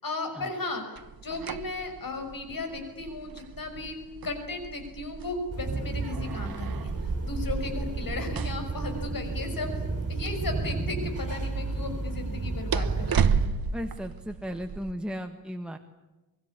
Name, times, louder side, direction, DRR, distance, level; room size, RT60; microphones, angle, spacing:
voice 1, 0.0-0.8 1.2-4.0 4.2-9.7 10.1-13.4, left 3 dB, 70° left, 6 dB, 5.8 m, -35 dB
sound 1, 1.0-14.9, right 6 dB, 80° right, 1.1 m, -35 dB
sound 2, 5.5-13.5, right 3 dB, 45° right, 7.1 m, -32 dB
voice 2, 13.7-15.8, equal, 5° right, 4 dB, 1.5 m, -35 dB
25.0 x 23.0 x 9.8 m, 1.1 s
wide cardioid pair, 135°, 35 cm